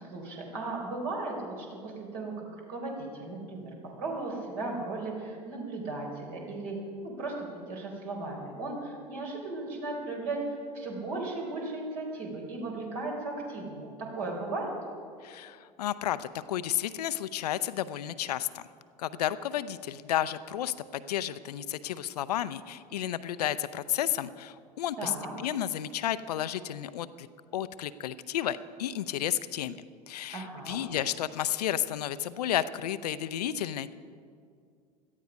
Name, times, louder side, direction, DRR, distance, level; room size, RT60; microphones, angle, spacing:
voice 1, 0.0-3.7 4.0-6.8 7.0-14.7 25.0-25.3 30.3-30.8, right 2 dB, 60° right, 0 dB, 4.1 m, -36 dB
voice 2, 15.2-18.6 19.0-27.3 27.5-33.9, left 11 dB, 70° left, 14 dB, 0.6 m, -32 dB
17.0 x 12.5 x 5.2 m, 2.3 s
figure-of-eight pair, 75°, 21 cm